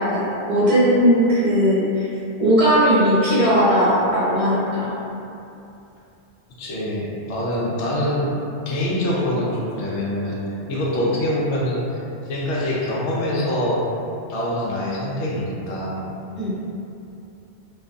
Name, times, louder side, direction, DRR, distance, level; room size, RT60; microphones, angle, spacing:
voice 1, 0.0-2.1 2.4-4.9 16.4-16.5, equal, 35° right, -11 dB, 0.7 m, -18 dB
voice 2, 6.6-8.3 8.7-10.4 10.7-11.8 12.3-13.8 14.3-16.0, left 1 dB, 80° left, -6 dB, 0.9 m, -24 dB
2.5 x 2.3 x 2.5 m, 2.7 s
omnidirectional pair, 1.2 m